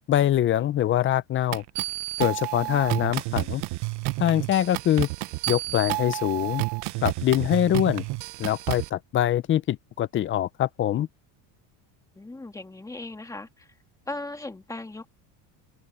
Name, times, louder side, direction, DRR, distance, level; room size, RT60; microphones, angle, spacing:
voice 1, 0.1-1.6 2.2-3.6 4.2-5.1 5.5-6.6 7.0-8.0 8.4-11.1, left 11 dB, 25° left, 0.5 m, -24 dB
sound 1, 1.5-8.9, right 22 dB, 55° right, 1.0 m, -30 dB
voice 2, 12.1-13.7 14.1-15.1, left 2 dB, 5° left, 2.1 m, -38 dB
cardioid pair, 145°, 48 cm